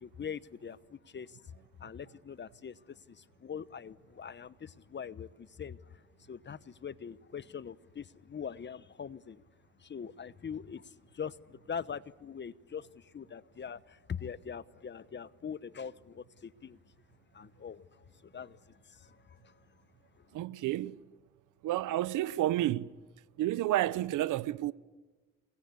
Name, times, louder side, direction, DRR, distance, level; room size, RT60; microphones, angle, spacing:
voice 1, 0.0-1.5 1.8-6.0 6.3-9.4 9.8-16.8 17.3-19.6 20.1-20.3, left 7 dB, 35° left, 0.9 m, -43 dB
voice 2, 20.3-21.0 21.6-22.9 23.4-24.7, right 14 dB, 85° right, 0.9 m, -30 dB
28.5 x 22.5 x 8.3 m
cardioid pair, 90°, 30 cm